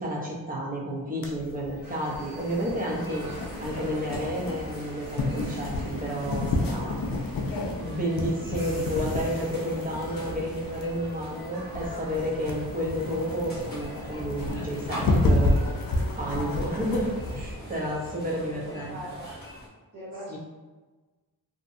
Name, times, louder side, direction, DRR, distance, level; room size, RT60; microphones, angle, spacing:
voice 1, 0.0-3.3 3.6-7.0 7.8-15.6 16.2-19.0 20.3-20.4, equal, 20° right, -4 dB, 0.6 m, -31 dB
sound 1, 1.2-17.5, left 2 dB, 60° left, 0.5 m, -30 dB
sound 2, 1.8-17.4, right 1 dB, 75° right, 1.2 m, -45 dB
sound 3, 2.9-19.7, equal, 25° left, 0.9 m, -44 dB
voice 2, 18.5-19.4 19.9-20.4, right 1 dB, 45° right, -12 dB, 1.0 m, -41 dB
2.7 x 2.1 x 2.5 m, 1.3 s
wide cardioid pair, 120°, 38 cm